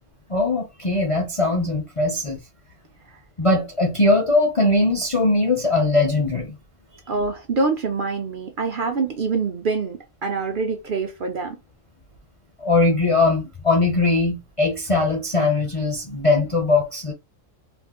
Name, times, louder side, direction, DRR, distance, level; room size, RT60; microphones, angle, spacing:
voice 1, 0.3-2.4 3.4-6.6 12.6-17.1, left 2 dB, 40° left, 0.5 m, -20 dB
voice 2, 7.1-11.6, right 4 dB, 55° right, 0.7 m, -25 dB
2.5 x 2.4 x 3.5 m
omnidirectional pair, 1.3 m